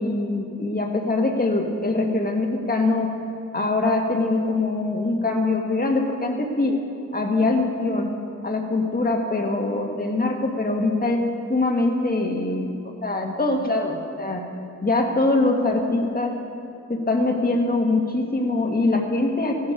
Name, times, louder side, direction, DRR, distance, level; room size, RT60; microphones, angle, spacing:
voice 1, 0.0-3.1 3.5-6.8 7.1-8.1 8.4-11.2 11.5-12.7 13.0-14.4 14.8-16.3 16.9-19.7, left 2 dB, 30° left, 2 dB, 1.7 m, -23 dB
16.5 x 11.0 x 5.2 m, 2.7 s
wide cardioid pair, 85°, 30 cm